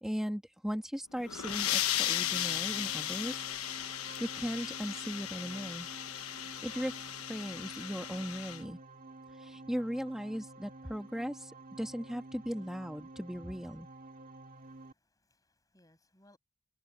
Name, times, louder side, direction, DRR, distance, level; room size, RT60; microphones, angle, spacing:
voice 1, 0.0-3.4 4.2-5.9 6.6-8.8 9.3-11.5 11.8-13.9, equal, ahead, 2.3 m, -38 dB
sound 1, 1.1-8.6, left 12 dB, 90° left, 1.1 m, -36 dB
sound 2, 1.4-14.9, right 2 dB, 40° right, 2.4 m, -51 dB
voice 2, 14.6-16.4, left 1 dB, 15° left, 6.8 m, -67 dB
head